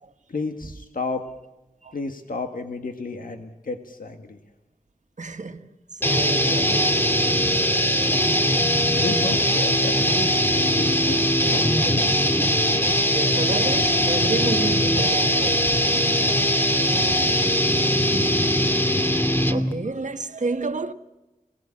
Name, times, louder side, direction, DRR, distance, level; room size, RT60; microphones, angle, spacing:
voice 1, 0.3-1.2 1.9-4.4 9.0-11.2 11.4-12.2 15.7-15.8, left 3 dB, 80° left, 1.7 m, -32 dB
voice 2, 5.2-5.7 6.0-7.2 13.0-15.8 18.0-18.4 19.5-20.9, right 3 dB, 60° right, 1.4 m, -30 dB
sound 1, 6.0-19.7, equal, 15° left, 2.0 m, -21 dB
27.0 x 18.5 x 8.6 m
wide cardioid pair, 70°, 14 cm